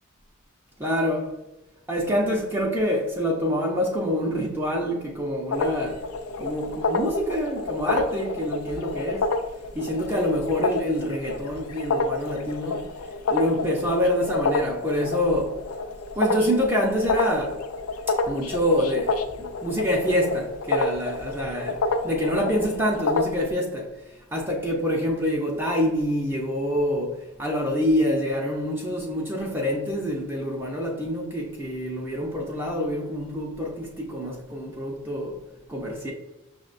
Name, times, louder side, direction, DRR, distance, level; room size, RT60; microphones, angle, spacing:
voice 1, 0.8-1.3 1.9-6.1 6.4-9.3 9.7-12.9 13.3-15.6 16.2-17.7 18.1-35.4 35.7-36.1, equal, 10° right, 0.5 m, -26 dB
sound 1, 5.5-23.5, left 3 dB, 80° left, 0.4 m, -29 dB
5.9 x 2.1 x 2.4 m
head